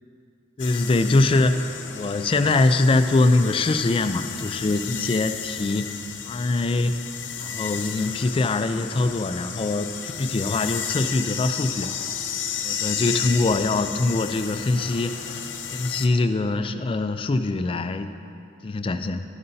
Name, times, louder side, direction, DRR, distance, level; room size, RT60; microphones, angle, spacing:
sound 1, 0.6-16.1, left 7 dB, 80° left, 0.6 m, -33 dB
voice 1, 0.6-5.9 6.3-11.9 12.6-15.4 15.7-18.1 18.6-19.2, left 2 dB, 30° left, 9 dB, 0.3 m, -23 dB
11.5 x 9.5 x 2.7 m, 2.6 s
head